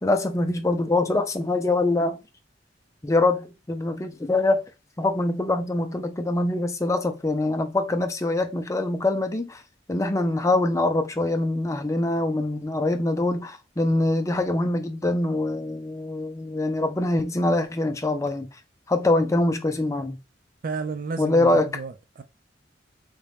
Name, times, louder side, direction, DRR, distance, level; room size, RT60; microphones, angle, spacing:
voice 1, 0.0-2.2 3.0-4.6 5.0-9.6 9.9-18.5 18.9-20.2 21.2-21.7, left 2 dB, 15° left, 0.4 m, -24 dB
voice 2, 20.6-22.2, right 4 dB, 45° right, 0.4 m, -32 dB
3.6 x 2.8 x 3.4 m
head